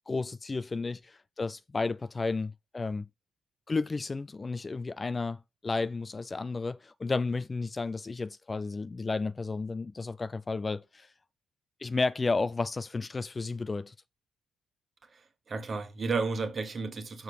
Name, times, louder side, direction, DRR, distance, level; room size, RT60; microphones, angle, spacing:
voice 1, 0.1-3.1 3.7-11.1 11.8-13.9, left 3 dB, 30° left, 0.3 m, -32 dB
voice 2, 15.0-17.2, right 4 dB, 40° right, 1.3 m, -33 dB
6.5 x 4.6 x 5.3 m
figure-of-eight pair, 40°, 0 cm